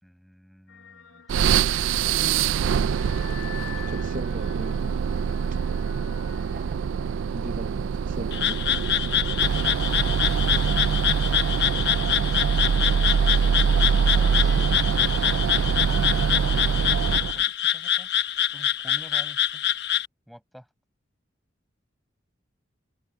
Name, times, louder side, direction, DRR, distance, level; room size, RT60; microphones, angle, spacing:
voice 1, 0.0-2.0 3.7-4.0 11.3-12.1 14.0-14.8 15.8-18.1 18.5-19.7 20.3-20.7, equal, ahead, 6.2 m, -49 dB
sound 1, 0.7-16.8, left 7 dB, 80° left, 3.0 m, -48 dB
sound 2, 1.3-17.4, right 6 dB, 85° right, 0.3 m, -24 dB
voice 2, 3.8-5.0 5.5-5.6 6.6-6.8 7.3-8.8 15.6-15.7, right 1 dB, 40° right, 0.9 m, -39 dB
Frog, 8.3-20.1, left 11 dB, 60° left, 1.0 m, -25 dB
open air
head